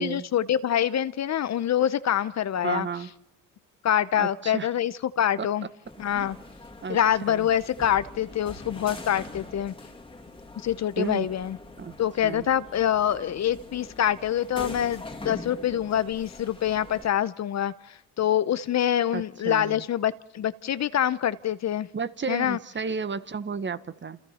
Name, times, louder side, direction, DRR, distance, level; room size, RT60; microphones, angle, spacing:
voice 1, 0.0-2.9 3.8-5.6 6.0-6.4 6.9-9.7 10.6-11.6 12.0-21.9 22.3-22.6, left 10 dB, 45° left, 0.7 m, -25 dB
voice 2, 2.6-3.1 4.1-4.7 6.1-6.4 6.8-7.0 7.3-7.5 11.0-11.3 11.8-12.0 12.2-12.5 19.1-19.8 21.9-24.2, right 5 dB, 30° right, 1.2 m, -32 dB
sound 1, 5.9-17.1, left 2 dB, 15° left, 2.6 m, -43 dB
28.5 x 28.0 x 4.3 m
supercardioid pair, 80°, 39 cm